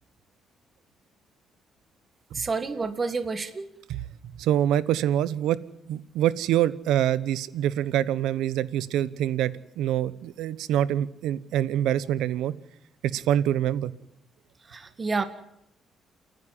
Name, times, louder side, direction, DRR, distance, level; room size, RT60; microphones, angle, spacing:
voice 1, 2.3-3.7 14.7-15.2, right 4 dB, 30° right, 10 dB, 1.8 m, -29 dB
voice 2, 4.4-5.6 5.9-12.5 13.0-13.9, right 11 dB, 90° right, 17 dB, 0.9 m, -25 dB
29.5 x 11.0 x 9.6 m, 0.77 s
cardioid pair, 90°, 0 cm